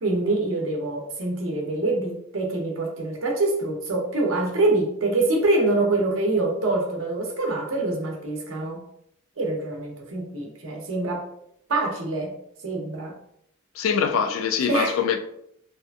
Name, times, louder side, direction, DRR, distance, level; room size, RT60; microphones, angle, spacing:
voice 1, 0.0-8.8 9.4-11.3 11.7-12.3 12.6-13.1 14.7-15.0, right 2 dB, 70° right, 0.7 m, -25 dB
voice 2, 13.8-15.2, left 6 dB, 70° left, 0.3 m, -23 dB
2.7 x 2.4 x 2.3 m
head